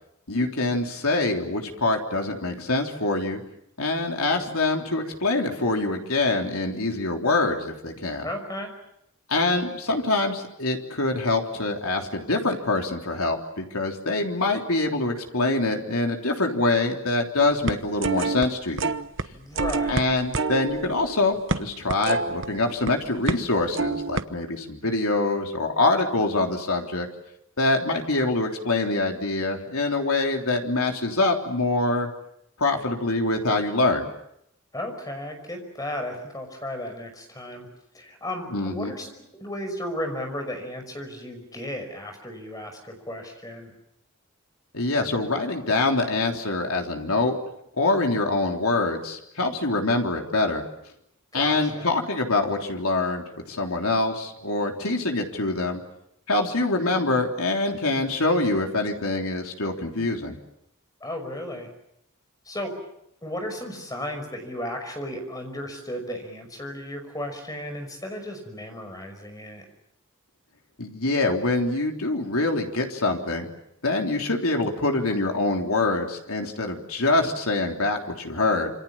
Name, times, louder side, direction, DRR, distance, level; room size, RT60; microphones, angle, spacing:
voice 1, 0.3-3.4 3.8-8.3 9.3-18.9 19.9-27.1 27.6-32.1 32.6-34.1 38.5-38.9 44.7-47.4 47.8-50.6 51.3-55.8 56.3-60.4 70.8-73.5 73.8-78.7, left 2 dB, 80° left, 2 dB, 3.5 m, -25 dB
voice 2, 8.2-8.7 19.3-20.1 34.7-37.7 37.9-43.7 51.3-51.9 61.0-61.7 62.5-62.8 63.2-69.7, left 1 dB, 15° left, 5 dB, 5.7 m, -34 dB
sound 1, 17.4-18.5 18.8-19.3 19.6-22.9 23.3-23.5 23.7-24.2, right 3 dB, 60° right, 1.0 m, -27 dB
27.0 x 26.0 x 7.3 m, 0.79 s
head